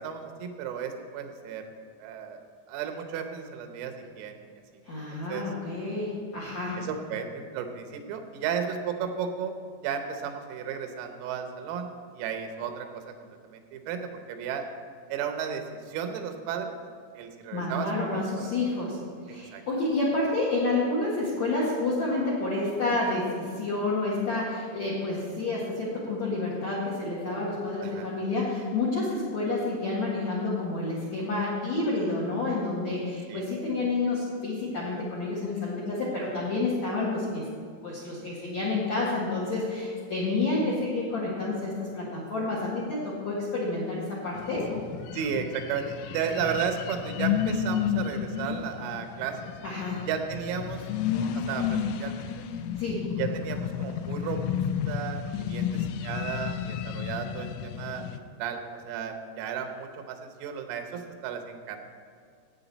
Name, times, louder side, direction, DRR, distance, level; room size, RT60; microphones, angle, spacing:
voice 1, 0.0-1.7 2.0-2.4 2.7-4.4 5.3-5.5 6.8-9.5 9.8-11.9 12.2-13.1 13.4-14.6 15.1-16.8 17.2-18.5 19.5-19.6 27.8-28.1 33.3-33.4 45.1-49.5 50.1-50.9 51.1-52.3 53.2-58.1 58.4-61.8, right 7 dB, 90° right, 6 dB, 3.8 m, -34 dB
voice 2, 4.8-6.8 17.5-19.0 19.3-37.4 37.8-44.7 49.6-50.0 52.7-53.1, left 2 dB, 70° left, -5 dB, 1.7 m, -29 dB
sound 1, 44.4-58.2, left 8 dB, 85° left, 2.8 m, -32 dB
14.5 x 8.8 x 4.1 m, 2.2 s
omnidirectional pair, 6.0 m